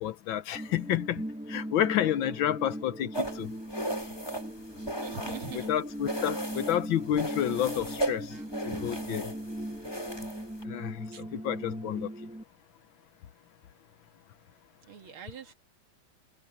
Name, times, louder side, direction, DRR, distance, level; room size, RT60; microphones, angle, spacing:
voice 1, 0.0-3.5 5.7-8.3 8.6-9.3 10.6-12.1, left 11 dB, 75° left, 1.5 m, -30 dB
sound 1, 0.5-12.4, right 1 dB, 5° right, 0.6 m, -39 dB
sound 2, 3.1-5.7 6.0-6.8 7.1-10.6, right 1 dB, 10° left, 2.6 m, -36 dB
voice 2, 4.7-5.9 7.5-8.5 11.1-11.2 14.9-15.5, right 6 dB, 75° right, 2.7 m, -45 dB
omnidirectional pair, 2.3 m